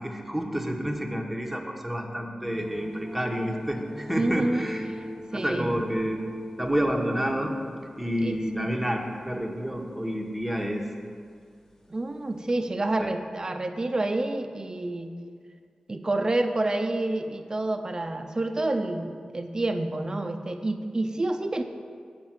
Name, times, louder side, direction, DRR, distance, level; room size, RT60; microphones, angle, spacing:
voice 1, 0.0-4.8 5.4-6.2 6.6-7.5 8.0-10.8 13.0-13.1, equal, 5° right, 1 dB, 1.1 m, -29 dB
sound 1, 2.5-12.6, equal, 25° left, 1.0 m, -40 dB
voice 2, 4.2-4.7 5.3-5.8 8.2-8.7 11.9-15.1 15.9-21.6, right 2 dB, 35° right, 6 dB, 0.6 m, -28 dB
7.8 x 5.1 x 7.4 m, 2.1 s
wide cardioid pair, 80°, 2 cm